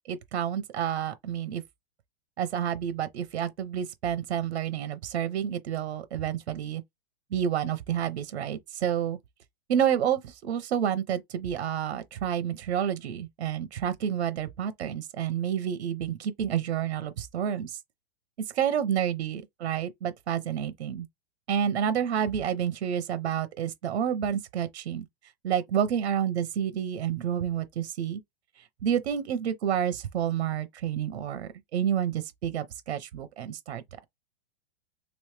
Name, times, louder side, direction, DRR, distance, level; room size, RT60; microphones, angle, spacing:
voice 1, 0.1-1.6 2.4-6.8 7.3-9.2 9.7-17.8 18.5-21.1 21.5-25.1 25.4-28.2 28.8-33.8, right 9 dB, 90° right, 0.8 m, -29 dB
3.2 x 3.1 x 3.2 m
supercardioid pair, 175°, 32 cm